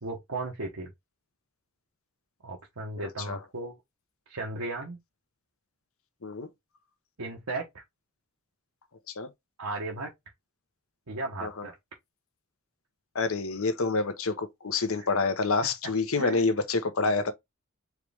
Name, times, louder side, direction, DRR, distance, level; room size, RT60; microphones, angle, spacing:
voice 1, 0.0-0.9 2.4-3.8 4.3-5.0 7.2-7.8 9.6-10.1 11.1-11.7 15.0-15.1 16.2-16.5, right 2 dB, 80° right, 1.1 m, -35 dB
voice 2, 3.0-3.4 6.2-6.5 9.1-9.3 11.4-11.7 13.1-17.3, left 3 dB, 65° left, 0.8 m, -28 dB
4.7 x 3.1 x 3.4 m
head